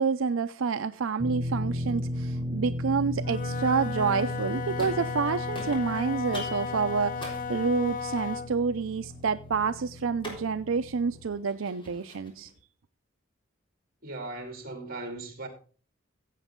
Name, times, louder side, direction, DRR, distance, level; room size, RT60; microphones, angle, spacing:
voice 1, 0.0-12.5, right 5 dB, 90° right, 0.5 m, -28 dB
sound 1, 1.2-11.2, left 1 dB, 5° right, 1.1 m, -36 dB
Wind instrument woodwind instrument, 3.2-8.6, left 5 dB, 45° left, 0.5 m, -35 dB
sound 2, 4.8-5.3 5.5-12.5, left 1 dB, 25° left, 3.7 m, -46 dB
voice 2, 14.0-15.5, right 2 dB, 50° right, 2.7 m, -38 dB
15.0 x 8.1 x 3.7 m
head